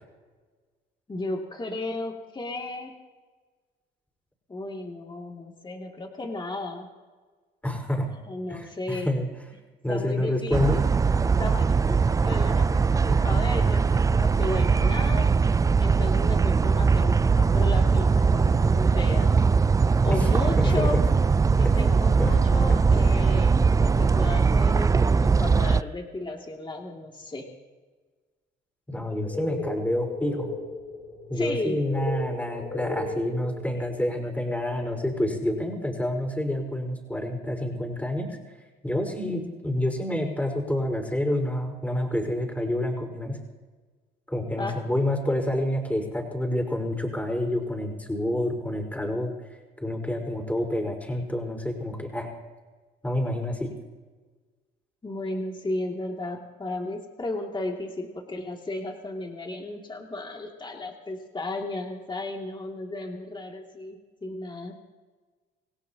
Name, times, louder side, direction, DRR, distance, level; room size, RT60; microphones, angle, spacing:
voice 1, 1.1-2.9 4.5-6.9 8.3-9.1 9.9-10.9 11.4-15.3 15.8-19.3 20.0-21.0 21.5-27.5 31.3-31.8 44.6-44.8 55.0-64.8, left 2 dB, 25° left, 1 dB, 2.5 m, -34 dB
voice 2, 7.6-8.1 8.5-9.3 9.8-10.8 20.1-20.3 20.6-21.0 21.6-21.8 22.2-22.3 28.9-30.5 31.3-38.4 38.8-43.4 44.3-49.3 49.8-52.3 53.0-53.7, left 1 dB, 10° left, 1 dB, 4.8 m, -28 dB
sound 1, 10.5-25.8, right 5 dB, 15° right, 0.4 m, -21 dB
sound 2, 28.9-33.9, left 2 dB, 55° left, 6.0 m, -36 dB
26.5 x 17.0 x 2.9 m, 1.4 s
supercardioid pair, 75°, 20 cm